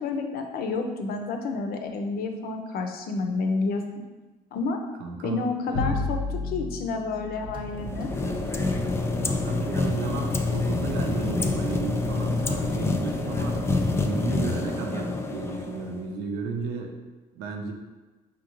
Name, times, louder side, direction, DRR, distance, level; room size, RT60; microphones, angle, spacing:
voice 1, 0.0-3.8 4.5-4.8 5.2-6.2 6.4-8.1, left 4 dB, 65° left, 5 dB, 0.6 m, -29 dB
voice 2, 5.0-6.0 9.2-13.6 14.0-17.0 17.3-17.7, right 4 dB, 90° right, 3 dB, 0.6 m, -34 dB
Bowed string instrument, 5.7-12.2, left 3 dB, 85° left, 0.9 m, -36 dB
sound 1, 7.4-13.8, right 2 dB, 30° right, 0.8 m, -39 dB
sound 2, 7.8-16.1, left 3 dB, 15° left, 0.3 m, -27 dB
5.2 x 2.5 x 3.0 m, 1.2 s
cardioid pair, 110°, 17 cm